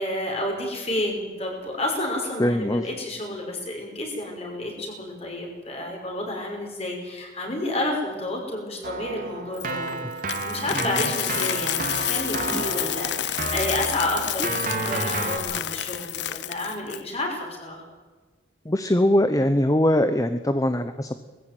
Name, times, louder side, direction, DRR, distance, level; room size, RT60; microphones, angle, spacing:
voice 1, 0.0-10.0 10.4-17.9, left 1 dB, 35° left, 1 dB, 5.9 m, -30 dB
voice 2, 2.4-2.9 12.5-12.6 18.7-21.2, left 1 dB, 20° left, 10 dB, 0.8 m, -21 dB
Keyboard (musical), 8.8-15.4, right 3 dB, 50° right, 2.9 m, -31 dB
Coin (dropping), 9.6-17.0, left 11 dB, 70° left, 0.9 m, -29 dB
20.0 x 15.0 x 9.4 m, 1.3 s
head